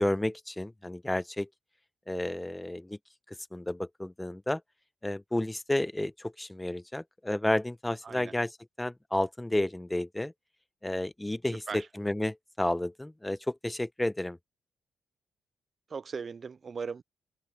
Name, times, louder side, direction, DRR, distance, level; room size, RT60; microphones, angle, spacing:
voice 1, 0.0-1.5 2.1-3.0 3.3-4.6 5.0-10.3 10.8-14.4, left 1 dB, 10° left, 0.8 m, -31 dB
voice 2, 15.9-17.0, right 5 dB, 50° right, 0.4 m, -38 dB
open air
hypercardioid pair, 45°, 0 cm